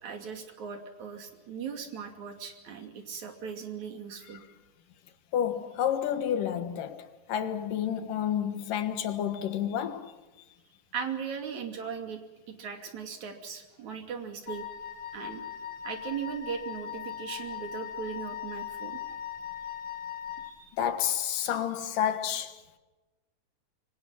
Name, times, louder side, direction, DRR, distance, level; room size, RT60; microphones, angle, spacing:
voice 1, 0.0-4.4 10.9-12.2 12.5-14.6 15.1-15.4 15.8-19.2 20.4-20.7, right 6 dB, 60° right, 3.9 m, -38 dB
voice 2, 5.3-10.1 20.7-22.6, left 9 dB, 80° left, 3.1 m, -30 dB
Wind instrument woodwind instrument, 14.5-20.6, left 9 dB, 50° left, 2.2 m, -39 dB
25.0 x 24.5 x 5.7 m
omnidirectional pair, 3.7 m